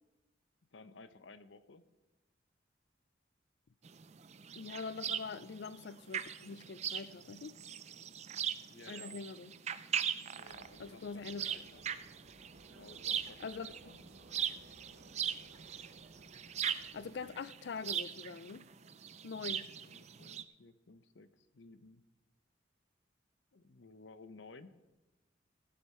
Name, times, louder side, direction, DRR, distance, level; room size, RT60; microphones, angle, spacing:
voice 1, 0.7-1.8 8.7-9.2 10.3-11.9 12.7-14.0 19.4-19.5 19.8-22.0 23.5-24.8, left 3 dB, 80° left, 0.8 m, -56 dB
sound 1, 3.8-20.4, right 8 dB, 35° right, 0.4 m, -40 dB
voice 2, 4.6-7.6 8.9-9.5 10.8-11.4 13.4-13.7 16.9-18.6 19.2-19.7, left 5 dB, 60° left, 0.4 m, -43 dB
Vehicle, 10.4-17.3, right 2 dB, 55° right, 1.3 m, -60 dB
15.5 x 10.5 x 4.4 m
head